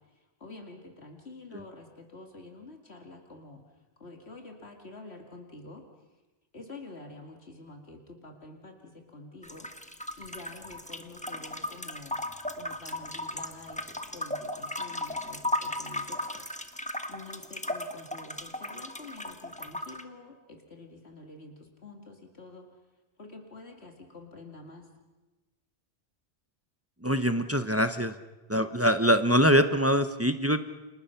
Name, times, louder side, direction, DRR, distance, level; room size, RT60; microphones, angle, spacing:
voice 1, 0.4-3.6 4.0-5.9 6.5-9.7 10.2-12.2 12.5-22.8 23.2-24.9, left 2 dB, 65° left, 3 dB, 2.5 m, -48 dB
sound 1, 9.4-20.0, left 1 dB, 5° left, 1.2 m, -36 dB
voice 2, 27.0-28.1 28.5-30.6, equal, 15° right, 9 dB, 0.8 m, -24 dB
30.0 x 27.0 x 5.8 m, 1.1 s
omnidirectional pair, 1.2 m